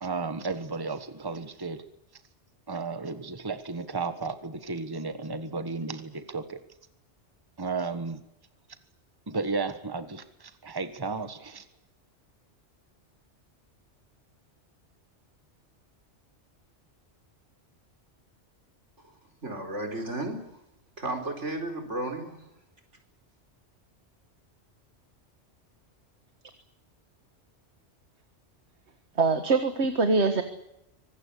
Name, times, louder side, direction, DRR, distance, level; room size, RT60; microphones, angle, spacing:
voice 1, 0.0-1.8 2.7-6.6 7.6-8.2 9.3-11.6, right 4 dB, 20° right, 10 dB, 1.4 m, -33 dB
voice 2, 19.4-20.4 21.0-22.5, right 2 dB, 85° right, 4 dB, 4.7 m, -33 dB
voice 3, 29.2-30.4, right 4 dB, 70° right, 8 dB, 1.8 m, -23 dB
25.0 x 19.5 x 8.4 m, 0.81 s
omnidirectional pair, 1.2 m